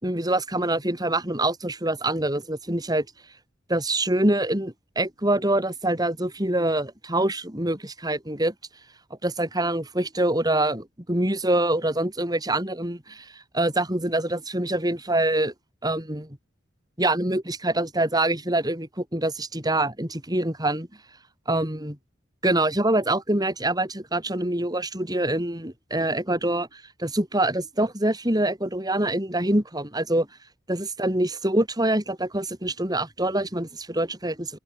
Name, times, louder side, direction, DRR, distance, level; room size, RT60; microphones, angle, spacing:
voice 1, 0.0-3.1 3.7-8.5 9.2-13.3 13.5-15.5 15.8-16.3 17.0-20.9 21.5-22.0 22.4-30.3 30.7-34.6, right 1 dB, 20° right, 6.0 m, -25 dB
head